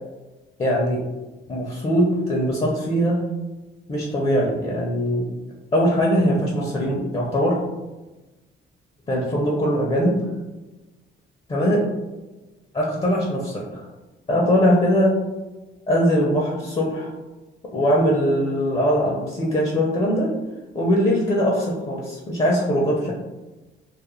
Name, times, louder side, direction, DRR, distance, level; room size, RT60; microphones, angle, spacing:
voice 1, 0.6-1.0 1.5-3.2 3.9-5.3 5.7-7.6 9.1-10.2 11.5-11.8 12.7-13.9 14.3-15.2 15.9-17.1 17.7-20.3 20.7-23.1, equal, 30° left, -3 dB, 0.5 m, -21 dB
2.4 x 2.1 x 3.0 m, 1.1 s
cardioid pair, 90°, 20 cm